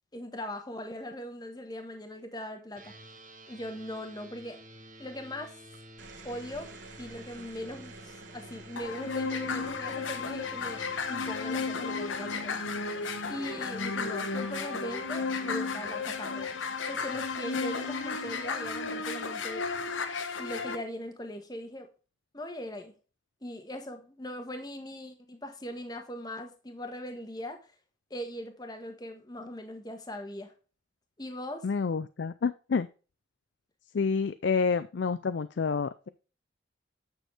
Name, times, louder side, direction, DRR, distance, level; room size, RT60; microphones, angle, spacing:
voice 1, 0.1-2.9 3.5-4.6 5.0-5.6 6.2-12.6 13.3-19.7 20.4-21.9 22.3-22.9 23.4-27.7 28.1-30.5 31.2-31.7, left 1 dB, 20° left, 1.4 m, -40 dB
sound 1, 2.7-14.6, equal, 40° right, 1.5 m, -51 dB
sound 2, 5.7-18.3 19.6-20.0, right 2 dB, 65° right, 1.3 m, -52 dB
sound 3, 8.8-20.7, left 4 dB, 80° left, 1.1 m, -33 dB
voice 2, 31.6-32.9 33.9-36.1, left 5 dB, 65° left, 0.4 m, -28 dB
9.2 x 6.5 x 3.3 m
head